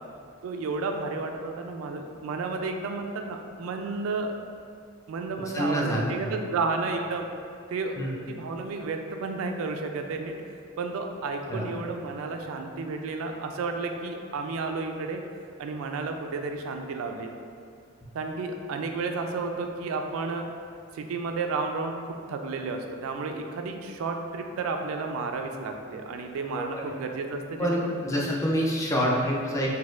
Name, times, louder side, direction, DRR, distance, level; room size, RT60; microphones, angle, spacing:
voice 1, 0.4-4.3 5.1-7.3 7.7-8.0 8.3-10.3 10.8-15.2 15.6-17.3 18.1-20.5 20.9-27.9, right 3 dB, 90° right, 4 dB, 0.3 m, -32 dB
voice 2, 5.5-6.4 8.0-8.1 11.5-11.7 26.5-26.7 27.6-29.8, equal, 15° left, -3 dB, 0.4 m, -27 dB
4.0 x 2.2 x 2.4 m, 2.3 s
head